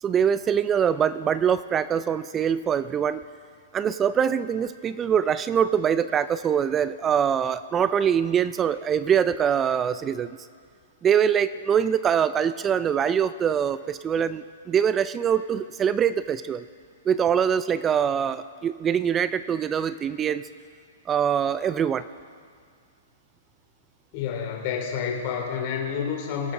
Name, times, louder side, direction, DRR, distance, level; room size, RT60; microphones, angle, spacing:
voice 1, 0.0-3.2 3.7-10.4 11.0-16.6 17.1-20.5 21.1-22.1, right 8 dB, 20° right, 14 dB, 0.4 m, -23 dB
voice 2, 24.1-26.5, left 7 dB, 45° left, 1 dB, 2.8 m, -29 dB
23.0 x 8.8 x 3.7 m, 2.1 s
hypercardioid pair, 130°, 0 cm